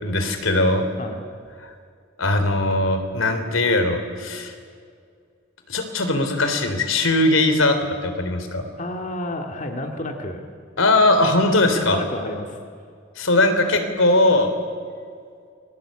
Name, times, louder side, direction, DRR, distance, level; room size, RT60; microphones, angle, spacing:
voice 1, 0.0-0.9 2.2-4.5 5.7-8.6 10.8-12.0 13.2-14.5, left 2 dB, 80° left, 7 dB, 3.6 m, -20 dB
voice 2, 8.8-10.4 11.7-12.6, left 1 dB, 40° left, 3 dB, 2.2 m, -30 dB
29.5 x 22.5 x 8.8 m, 2.2 s
head